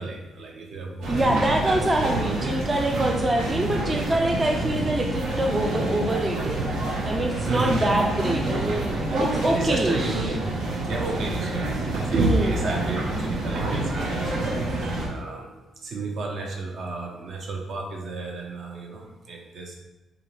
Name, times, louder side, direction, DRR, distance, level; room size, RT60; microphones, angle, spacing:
voice 1, 0.0-2.6 7.4-7.8 9.3-10.5 10.8-11.7 11.9-14.4 14.7-15.5 15.8-19.8, right 2 dB, 60° right, 0 dB, 0.7 m, -31 dB
sound 1, 1.0-15.1, right 2 dB, 90° right, 0.9 m, -28 dB
voice 2, 1.1-10.2 12.1-12.5, right 1 dB, 25° right, 2 dB, 0.4 m, -25 dB
3.8 x 2.9 x 3.2 m, 1.1 s
cardioid pair, 90°, 0 cm